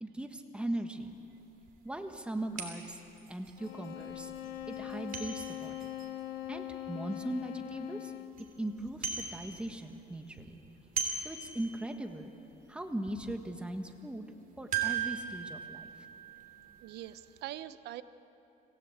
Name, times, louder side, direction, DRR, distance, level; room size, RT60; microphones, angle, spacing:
voice 1, 0.0-1.2 1.8-3.0 3.3-4.3 4.7-5.9 6.5-8.1 8.6-10.6 11.2-12.3 12.7-14.3 14.6-15.9, right 1 dB, 5° right, 5 dB, 1.6 m, -39 dB
sound 1, 1.1-1.2 1.7-1.8 2.6-7.3 7.7-7.8 8.1-8.5 8.8-9.9 10.1-12.1 12.5-12.6 13.1-13.3 14.7-17.1 17.4-17.5, right 7 dB, 55° right, 3.2 m, -39 dB
sound 2, 3.6-8.5, left 13 dB, 75° left, 1.3 m, -42 dB
voice 2, 16.8-18.0, right 13 dB, 80° right, 13 dB, 0.8 m, -43 dB
25.5 x 17.0 x 8.1 m, 2.8 s
cardioid pair, 110°, 17 cm